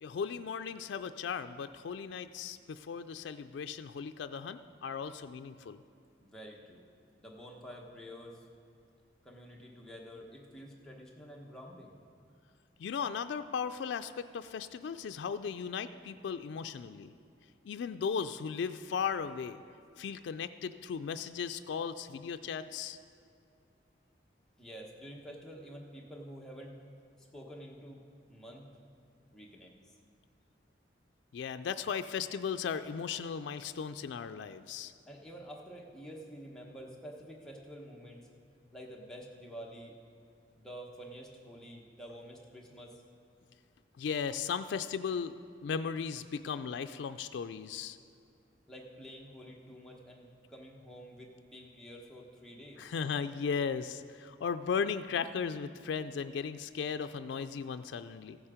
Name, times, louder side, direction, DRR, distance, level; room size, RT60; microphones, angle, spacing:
voice 1, 0.0-5.8 12.8-17.1 17.6-19.6 20.0-23.0 31.3-34.9 44.0-45.3 45.6-48.0 52.8-58.4, left 6 dB, 85° left, 9 dB, 0.3 m, -36 dB
voice 2, 6.2-6.9 7.2-8.4 9.2-12.0 24.6-26.8 27.2-28.7 29.3-30.0 35.1-38.3 38.7-39.9 40.6-43.0 48.7-52.9, equal, 5° left, -2 dB, 1.1 m, -49 dB
15.0 x 7.3 x 5.0 m, 2.4 s
head